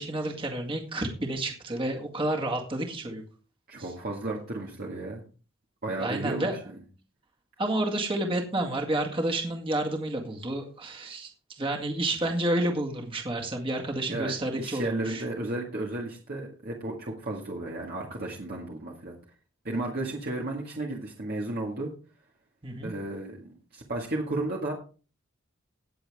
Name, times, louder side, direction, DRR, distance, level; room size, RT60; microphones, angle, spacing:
voice 1, 0.0-3.2 6.0-6.6 7.6-11.3 11.6-15.2 22.6-22.9, right 1 dB, 25° right, 1 dB, 2.0 m, -30 dB
voice 2, 3.7-5.2 5.8-6.8 14.1-19.2 19.6-21.9 22.8-24.7, right 2 dB, 50° right, -1 dB, 1.9 m, -33 dB
18.0 x 7.1 x 3.6 m, 0.37 s
head